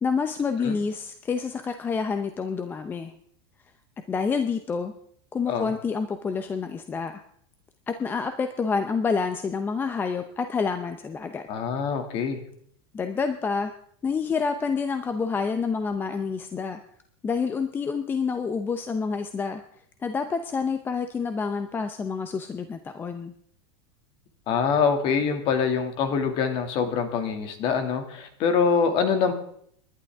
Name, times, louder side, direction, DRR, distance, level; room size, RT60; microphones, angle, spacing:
voice 1, 0.0-3.1 4.1-4.9 5.3-7.2 7.9-11.4 12.9-13.7 14.0-16.8 17.2-19.6 20.0-23.3, left 5 dB, 15° left, 8 dB, 0.7 m, -28 dB
voice 2, 11.5-12.4 24.5-29.3, left 6 dB, 40° left, 6 dB, 2.3 m, -24 dB
28.5 x 11.5 x 3.6 m, 0.67 s
supercardioid pair, 155°, 14 cm